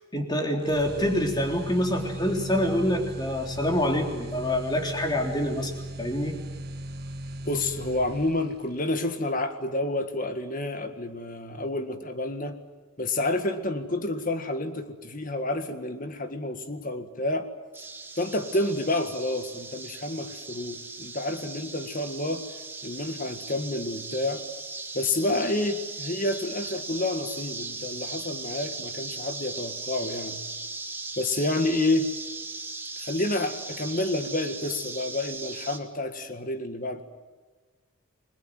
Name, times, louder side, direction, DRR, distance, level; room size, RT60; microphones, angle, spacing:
voice 1, 0.1-5.7 6.0-6.4, left 1 dB, 20° left, 2 dB, 3.6 m, -26 dB
sound 1, 0.6-8.6, right 1 dB, 45° right, 1.6 m, -38 dB
voice 2, 7.5-12.6 13.0-17.5 18.2-22.5 22.8-24.4 24.9-30.4 31.2-32.1 33.0-37.0, left 2 dB, 40° left, 8 dB, 1.9 m, -29 dB
sound 2, 17.7-35.8, right 3 dB, 10° right, 1.8 m, -38 dB
30.0 x 21.5 x 7.7 m, 1.3 s
head